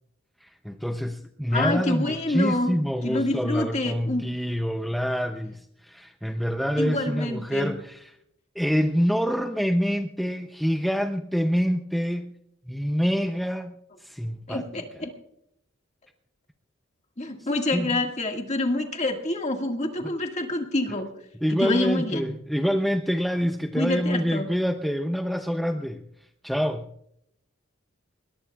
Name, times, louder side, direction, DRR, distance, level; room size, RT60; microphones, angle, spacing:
voice 1, 0.4-8.2 8.6-12.3 12.7-13.7 14.0-14.9 17.7-18.0 20.0-20.1 21.4-26.0 26.4-26.9, equal, ahead, 5 dB, 0.5 m, -26 dB
voice 2, 1.5-2.7 3.0-4.3 6.8-7.7 14.5-15.1 17.2-21.1 21.5-22.3 23.8-24.5, left 2 dB, 30° left, 3 dB, 1.8 m, -27 dB
21.5 x 20.5 x 2.3 m, 0.75 s
head